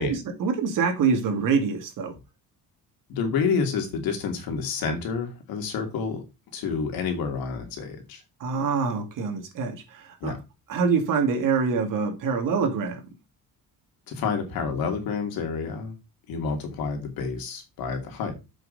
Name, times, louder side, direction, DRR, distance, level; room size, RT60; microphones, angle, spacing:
voice 1, 0.0-2.1 8.4-10.3 10.7-13.0, right 5 dB, 65° right, 2.4 m, -25 dB
voice 2, 3.1-6.2 6.5-8.2 10.2-10.4 14.1-16.0 16.3-18.3, left 5 dB, 85° left, 2.9 m, -29 dB
7.8 x 5.7 x 4.2 m
cardioid pair, 155°, 35 cm